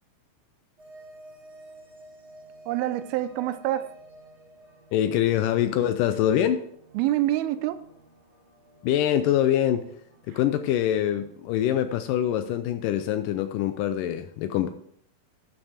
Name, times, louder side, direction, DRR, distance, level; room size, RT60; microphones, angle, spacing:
sound 1, 0.8-12.5, right 1 dB, 65° right, 0.6 m, -52 dB
voice 1, 2.7-3.9 6.9-7.8, right 14 dB, 90° right, 13 dB, 2.5 m, -26 dB
voice 2, 4.9-6.6 8.8-9.8 10.3-14.7, left 11 dB, 80° left, 10 dB, 2.0 m, -24 dB
12.0 x 6.0 x 4.9 m, 0.65 s
omnidirectional pair, 4.2 m